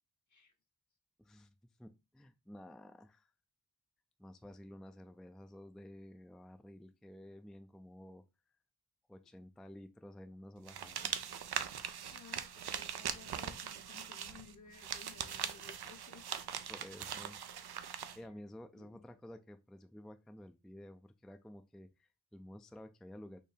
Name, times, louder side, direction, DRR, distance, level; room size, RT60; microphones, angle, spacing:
voice 1, 1.2-3.3 4.2-8.2 9.1-11.2 16.7-17.4 18.2-23.4, left 1 dB, ahead, 0.3 m, -52 dB
sound 1, 10.7-18.2, right 8 dB, 80° right, 0.5 m, -41 dB
voice 2, 12.1-16.5 18.7-19.0, left 6 dB, 50° left, 0.9 m, -57 dB
4.3 x 2.7 x 3.4 m
wide cardioid pair, 45°, 38 cm